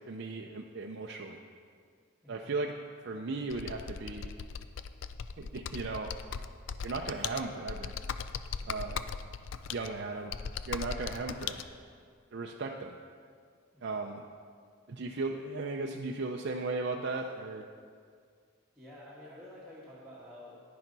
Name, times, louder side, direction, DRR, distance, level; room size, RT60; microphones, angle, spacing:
voice 1, 0.1-1.4 2.3-2.7 3.0-4.3 5.4-6.1 6.8-7.9 8.7-9.0 9.7-10.3 10.7-11.5 12.3-13.0 13.8-14.2 14.9-17.7, right 3 dB, 55° right, 1 dB, 0.5 m, -36 dB
voice 2, 2.2-2.6 8.6-9.0 11.3-11.8 13.7-14.0 18.7-20.6, left 1 dB, 5° right, -10 dB, 1.6 m, -50 dB
Computer keyboard, 3.5-11.6, left 6 dB, 65° left, 0.4 m, -39 dB
10.5 x 10.0 x 4.0 m, 2.1 s
head